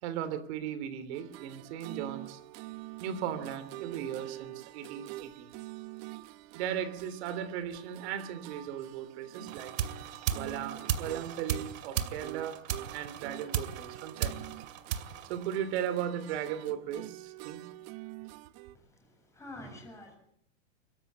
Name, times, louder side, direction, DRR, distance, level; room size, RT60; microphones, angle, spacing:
voice 1, 0.0-2.4 3.0-5.5 6.5-9.7 10.3-12.6 12.9-14.5 15.2-17.7, right 9 dB, 55° right, 14 dB, 3.1 m, -37 dB
sound 1, 1.1-18.8, right 18 dB, 40° right, 1.0 m, -46 dB
sound 2, 9.5-16.0, right 9 dB, 75° right, 2.4 m, -36 dB
voice 2, 19.0-20.2, left 1 dB, 5° left, 1 dB, 8.0 m, -47 dB
24.5 x 14.0 x 8.5 m, 0.69 s
supercardioid pair, 140°, 40 cm